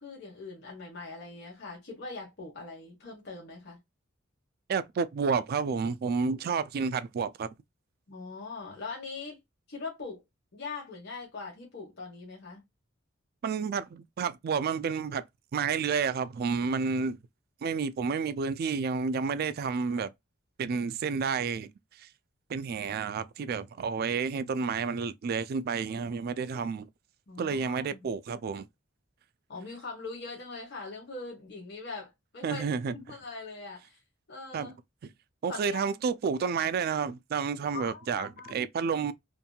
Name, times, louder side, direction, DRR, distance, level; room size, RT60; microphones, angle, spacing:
voice 1, 0.0-3.8 8.1-9.4 9.7-10.2 10.5-12.6 27.3-28.1 29.5-32.6 32.9-34.0 34.3-34.7 35.5-35.9 37.7-38.7, left 3 dB, 55° left, 1.1 m, -41 dB
voice 2, 4.7-7.5 13.4-15.2 15.5-17.2 17.6-20.1 20.6-21.7 22.0-22.1 22.5-26.9 27.4-28.7 32.4-33.2 34.5-34.7 35.4-39.1, right 5 dB, 50° right, 0.3 m, -30 dB
2.8 x 2.5 x 2.2 m
head